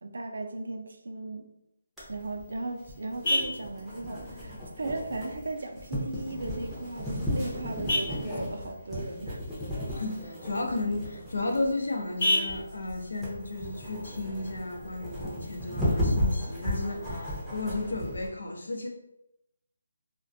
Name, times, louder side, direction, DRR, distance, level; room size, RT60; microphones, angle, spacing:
voice 1, 0.0-1.5 2.1-9.4, right 2 dB, 70° right, 4 dB, 0.4 m, -37 dB
Vehicle horn car horn honking, 2.0-15.0, left 1 dB, 30° left, 0.8 m, -36 dB
sound 1, 2.0-18.3, left 1 dB, ahead, 0.5 m, -34 dB
voice 2, 9.9-18.9, left 2 dB, 80° left, 2 dB, 0.6 m, -33 dB
2.4 x 2.1 x 2.5 m, 0.84 s
hypercardioid pair, 170°, 0 cm